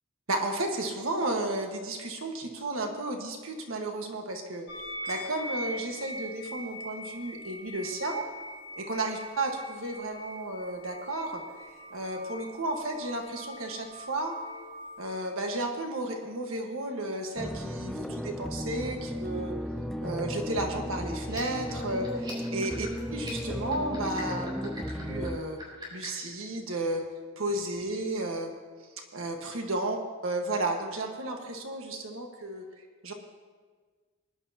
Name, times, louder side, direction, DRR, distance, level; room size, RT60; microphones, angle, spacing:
voice 1, 0.3-4.6 5.1-8.3 8.8-11.4 11.9-14.3 15.0-19.5 20.0-25.6 25.9-27.0 27.4-28.5 29.1-30.0 30.2-32.6 33.0-33.1, right 2 dB, 85° right, 2 dB, 1.5 m, -33 dB
sound 1, 4.7-15.1, equal, 75° left, 1.7 m, -42 dB
sound 2, 17.4-25.4, equal, ahead, 0.5 m, -35 dB
sound 3, 21.2-26.2, right 1 dB, 20° right, 4.0 m, -45 dB
20.5 x 11.0 x 2.9 m, 1.5 s
head